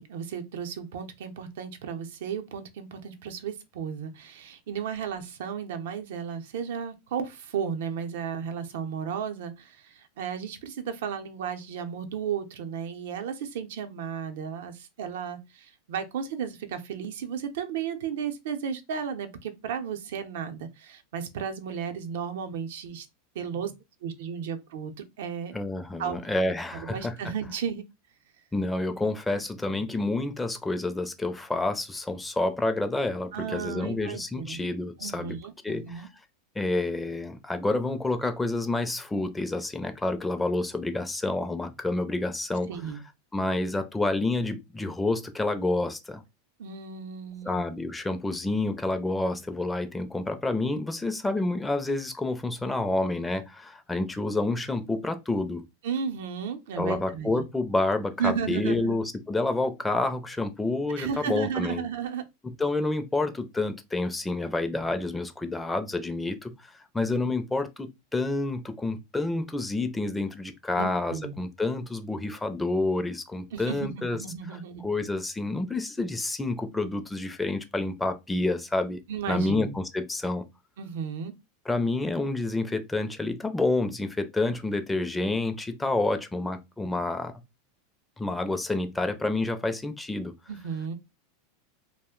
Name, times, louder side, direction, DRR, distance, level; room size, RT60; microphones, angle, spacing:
voice 1, 0.0-23.1 23.3-23.7 24.0-25.5 26.0-26.2 26.7-27.8 33.3-34.6 35.0-36.1 42.7-43.0 46.6-47.6 55.8-57.4 58.2-59.0 61.0-62.2 70.8-71.4 73.5-74.9 79.1-79.7 80.8-81.3 90.5-90.9, right 7 dB, 75° right, 0.6 m, -34 dB
voice 2, 25.5-27.2 28.5-35.4 35.6-36.0 36.6-42.7 43.3-46.2 47.5-55.6 56.8-61.8 62.4-74.2 74.8-79.0 79.3-80.4 81.7-87.3 88.2-90.3, left 2 dB, 10° left, 0.4 m, -29 dB
2.5 x 2.0 x 3.6 m
supercardioid pair, 135°, 0 cm